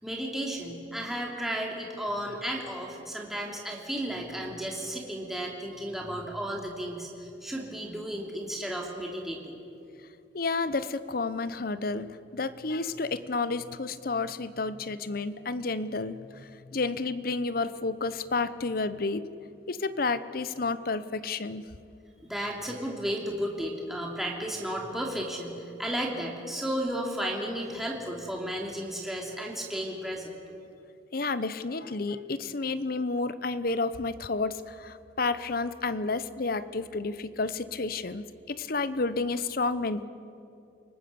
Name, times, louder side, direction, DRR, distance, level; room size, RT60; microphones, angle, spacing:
voice 1, 0.0-9.6 22.2-30.3, equal, ahead, -1 dB, 3.0 m, -33 dB
voice 2, 10.3-19.3 19.7-21.6 31.1-40.0, left 3 dB, 50° left, 14 dB, 0.8 m, -31 dB
30.0 x 19.0 x 6.9 m, 2.5 s
head